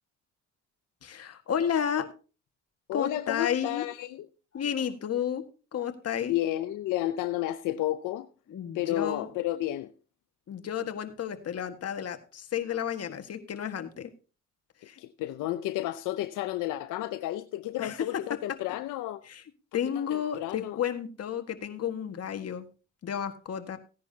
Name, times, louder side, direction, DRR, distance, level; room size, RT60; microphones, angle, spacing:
voice 1, 1.0-2.1 2.9-3.9 4.5-5.4 5.7-6.3 8.5-9.3 10.5-14.1 14.8-15.0 17.8-18.0 19.3-19.4 19.7-22.6 23.0-23.8, left 8 dB, 55° left, 1.7 m, -32 dB
voice 2, 2.9-4.3 6.3-8.3 8.7-9.9 15.0-19.2 19.9-20.8, left 14 dB, 90° left, 0.7 m, -31 dB
16.0 x 10.5 x 2.8 m
cardioid pair, 90°, 30 cm